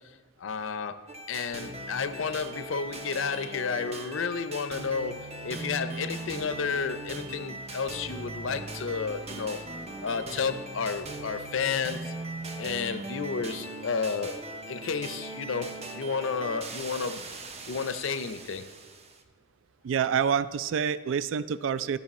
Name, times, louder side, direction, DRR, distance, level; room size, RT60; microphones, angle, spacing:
voice 1, 0.4-1.0 1.3-9.6 10.0-12.1 12.6-14.4 14.7-15.7 15.9-17.3 17.7-18.7, left 5 dB, 85° left, 12 dB, 0.5 m, -31 dB
sound 1, 1.1-19.2, right 2 dB, 35° right, 0.7 m, -40 dB
voice 2, 19.8-22.0, right 7 dB, 75° right, 16 dB, 0.3 m, -27 dB
13.0 x 5.8 x 4.2 m, 1.4 s
head